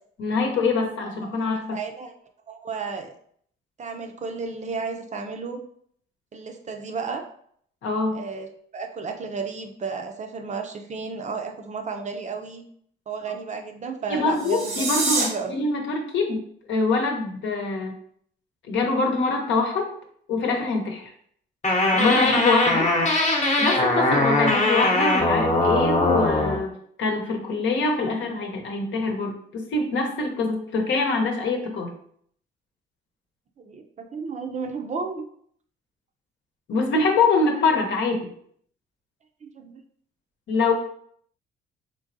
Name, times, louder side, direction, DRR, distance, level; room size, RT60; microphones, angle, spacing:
voice 1, 0.2-1.8 7.8-8.2 14.1-16.4 16.7-18.0 18.7-19.9 20.3-21.1 21.8-22.9 23.6-31.9 36.7-38.3 40.5-40.7, left 3 dB, 70° left, 1 dB, 0.9 m, -24 dB
voice 2, 0.8-1.4 1.7-2.1 2.5-3.1 3.8-5.6 6.3-7.2 8.1-8.5 8.7-12.6 13.1-14.9 15.2-15.5 33.6-35.2 39.4-39.7, right 5 dB, 35° right, 5 dB, 0.5 m, -33 dB
sound 1, 14.3-15.2, right 3 dB, 90° right, 1.3 m, -26 dB
sound 2, 21.6-26.6, left 2 dB, 35° left, 0.9 m, -21 dB
3.8 x 3.1 x 2.6 m, 0.63 s
cardioid pair, 90°, 20 cm